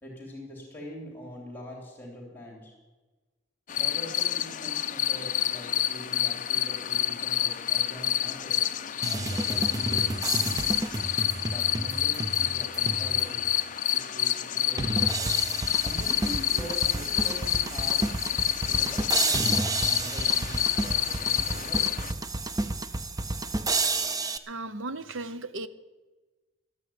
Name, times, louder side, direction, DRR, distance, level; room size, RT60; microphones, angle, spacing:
voice 1, 0.0-2.7 3.7-8.6 9.1-10.8 11.4-13.5 13.9-15.3 15.8-18.0 18.7-21.9, equal, 10° left, -2 dB, 3.0 m, -43 dB
sound 1, 3.7-22.1, left 12 dB, 40° left, 0.5 m, -28 dB
sound 2, 9.0-13.4 13.9-14.0 14.8-24.4, right 2 dB, 15° right, 0.5 m, -31 dB
voice 2, 24.5-25.7, right 2 dB, 70° right, 14 dB, 0.8 m, -36 dB
13.0 x 9.4 x 9.2 m, 1.2 s
head